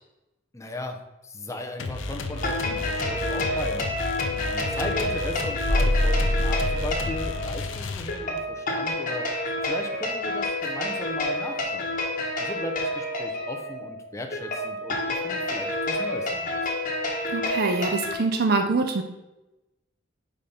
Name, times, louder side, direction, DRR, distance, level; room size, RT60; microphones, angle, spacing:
voice 1, 0.5-1.0 1.2-3.8 4.3-12.0 12.4-16.7, left 1 dB, 15° left, 4 dB, 0.6 m, -37 dB
sound 1, 1.8-8.5, left 3 dB, 80° left, 0.6 m, -33 dB
sound 2, 2.3-18.1, left 1 dB, 40° left, 1.3 m, -29 dB
sound 3, 5.6-7.5, left 1 dB, 20° right, 1.9 m, -24 dB
voice 2, 17.3-19.0, right 3 dB, 50° right, 5 dB, 0.5 m, -24 dB
5.0 x 4.2 x 5.3 m, 1.0 s
head